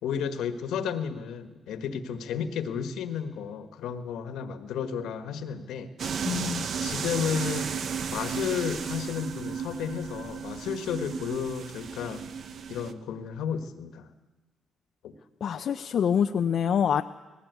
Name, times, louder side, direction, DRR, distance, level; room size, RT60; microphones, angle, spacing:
voice 1, 0.0-5.9 6.8-7.7 8.1-12.2 12.7-14.1 15.0-15.1, left 7 dB, 80° left, 9 dB, 1.6 m, -32 dB
sound 1, 6.0-12.9, right 6 dB, 60° right, 1.1 m, -34 dB
voice 2, 6.2-6.7 15.4-17.0, left 8 dB, 60° left, 7 dB, 0.6 m, -25 dB
19.0 x 17.5 x 8.2 m, 1.2 s
cardioid pair, 90°, 0 cm